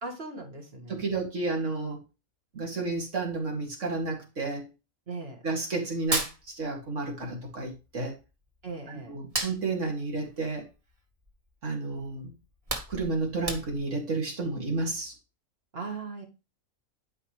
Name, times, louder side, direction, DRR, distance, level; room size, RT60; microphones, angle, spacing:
voice 1, 0.0-1.1 5.1-5.4 8.6-9.2 15.7-16.2, right 3 dB, 50° right, 2 dB, 2.1 m, -38 dB
voice 2, 0.9-2.0 2.5-4.7 5.4-8.2 9.1-10.7 11.6-12.3 12.9-15.1, right 3 dB, 65° right, 1 dB, 2.7 m, -31 dB
Hands, 6.0-7.2 7.5-8.7 9.1-11.5 11.9-12.0 12.4-14.0, right 2 dB, 25° right, 1.4 m, -34 dB
12.0 x 5.3 x 3.2 m, 0.29 s
omnidirectional pair, 1.4 m